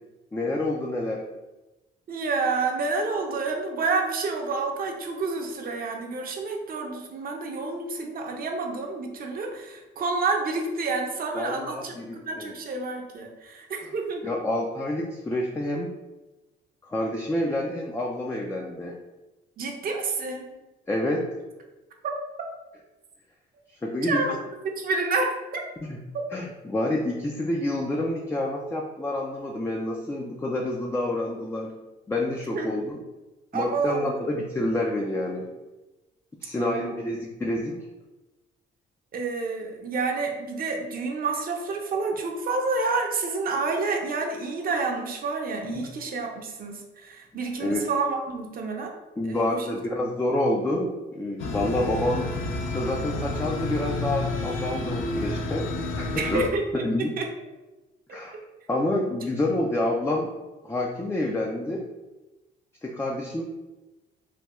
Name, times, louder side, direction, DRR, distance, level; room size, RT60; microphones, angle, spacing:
voice 1, 0.3-1.2 11.3-12.5 14.2-15.9 16.8-19.0 20.9-21.3 23.8-24.3 25.9-26.0 26.3-31.7 32.1-33.0 33.5-35.5 36.4-37.9 45.7-45.9 47.6-47.9 49.2-52.3 52.7-56.4 56.8-57.1 58.1-58.3 58.7-60.3 60.6-61.9 62.8-63.4, left 1 dB, 15° left, 0 dB, 0.3 m, -28 dB
voice 2, 2.1-14.3 19.6-20.4 22.0-22.1 24.1-24.4 24.8-25.6 32.5-32.7 33.5-34.3 36.6-37.1 39.1-48.9 49.2-49.7 56.1-57.3 58.1-58.2, right 3 dB, 45° right, 2 dB, 0.6 m, -29 dB
sound 1, 51.4-56.5, left 2 dB, 80° left, 0.5 m, -30 dB
3.3 x 2.2 x 2.9 m, 1.1 s
cardioid pair, 90°, 20 cm